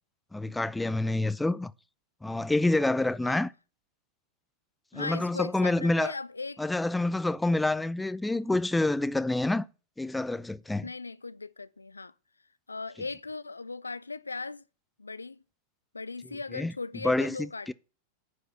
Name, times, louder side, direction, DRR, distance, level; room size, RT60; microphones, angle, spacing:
voice 1, 0.3-1.7 2.2-3.5 4.9-6.1 6.6-9.7 10.0-10.9 16.5-16.7 17.0-17.4 17.7-17.8, left 2 dB, 5° left, 0.4 m, -27 dB
voice 2, 4.9-6.6 10.8-12.1 12.7-14.6 15.0-15.4 15.9-17.7, left 3 dB, 80° left, 0.4 m, -38 dB
8.9 x 4.8 x 6.7 m
figure-of-eight pair, 90°, 0 cm